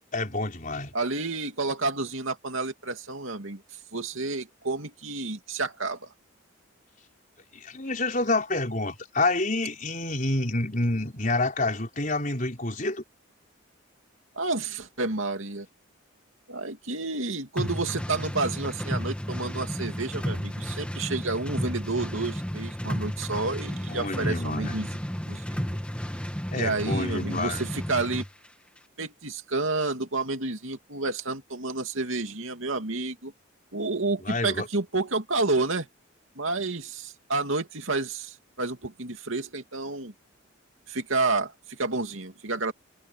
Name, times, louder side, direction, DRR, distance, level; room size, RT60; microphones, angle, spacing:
voice 1, 0.1-0.9 7.5-13.0 23.9-24.8 26.5-27.6 34.2-34.7, left 2 dB, 40° left, 4.8 m, -28 dB
voice 2, 0.9-3.6 3.9-6.1 14.4-15.7 16.5-24.9 25.3-25.6 26.5-28.2 29.0-33.3 33.7-35.9 36.4-40.1 40.9-42.7, right 3 dB, 75° right, 2.7 m, -30 dB
sound 1, 17.6-28.3, equal, 5° left, 2.0 m, -32 dB
head